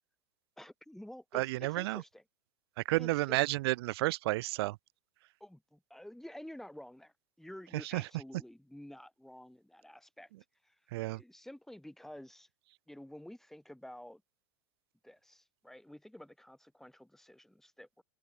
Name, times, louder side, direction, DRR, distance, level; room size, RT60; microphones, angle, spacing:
voice 1, 0.6-1.4 1.7-2.2 3.0-3.4 5.4-10.3 10.6-10.8 11.1-12.5 12.9-14.2 15.0-18.0, left 1 dB, ahead, 3.9 m, -50 dB
voice 2, 1.3-2.0 2.8-4.8 7.7-8.1 10.9-11.2, right 19 dB, 65° right, 1.3 m, -31 dB
open air
hypercardioid pair, 105°, 14 cm